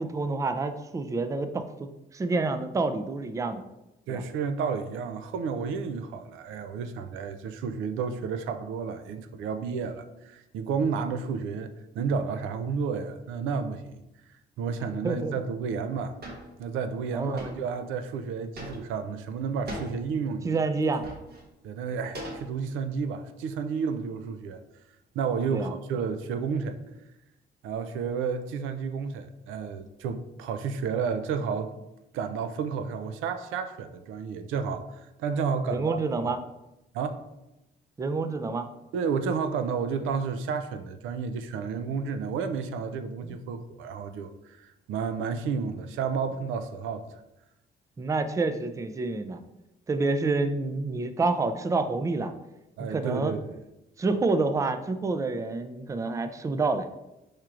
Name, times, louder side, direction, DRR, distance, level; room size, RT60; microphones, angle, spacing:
voice 1, 0.0-3.6 4.1-4.2 15.0-15.3 17.1-17.5 20.4-21.0 25.5-25.7 35.7-36.4 38.0-38.7 43.2-43.3 48.0-49.4 49.9-52.3 52.8-53.3 54.0-57.0, right 3 dB, 15° right, 0.3 m, -28 dB
voice 2, 4.1-11.7 12.0-14.0 14.6-16.2 16.6-20.6 21.6-24.6 25.2-26.8 27.6-31.7 32.1-36.3 36.9-37.2 38.9-47.0 52.8-53.6, right 5 dB, 90° right, 0.4 m, -31 dB
sound 1, 16.2-16.5 17.4-17.6 18.6-19.0 19.7-20.0 20.8-21.4 22.1-22.8, right 1 dB, 55° right, 1.2 m, -39 dB
4.8 x 4.4 x 2.4 m
cardioid pair, 90°, 20 cm